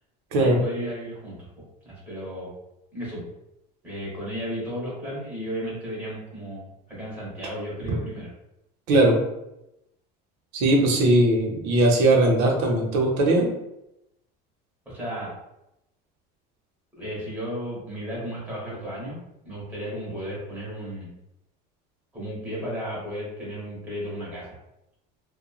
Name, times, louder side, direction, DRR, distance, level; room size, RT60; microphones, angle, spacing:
voice 1, 0.3-1.5 1.8-2.5 2.9-3.3 3.8-8.3 14.8-15.3 17.0-21.1 22.1-24.6, equal, 10° right, -7 dB, 1.0 m, -34 dB
voice 2, 10.5-13.5, right 1 dB, 70° right, 1 dB, 0.7 m, -19 dB
3.0 x 2.2 x 2.3 m, 0.87 s
cardioid pair, 170°, 21 cm